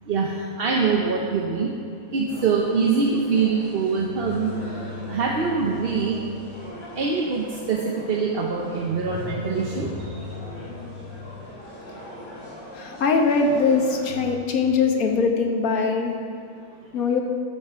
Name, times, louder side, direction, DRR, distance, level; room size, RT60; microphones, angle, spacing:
voice 1, 0.1-1.7 2.1-4.5 5.1-6.2 7.0-10.2, right 4 dB, 45° right, -1 dB, 0.9 m, -24 dB
sound 1, 2.3-14.1, equal, 55° left, 3.7 m, -41 dB
Drum, 9.1-11.1, right 2 dB, 10° right, 2.0 m, -38 dB
voice 2, 12.7-16.1 16.9-17.2, left 4 dB, 75° left, 2 dB, 1.6 m, -21 dB
13.0 x 6.6 x 5.7 m, 2.4 s
omnidirectional pair, 1.5 m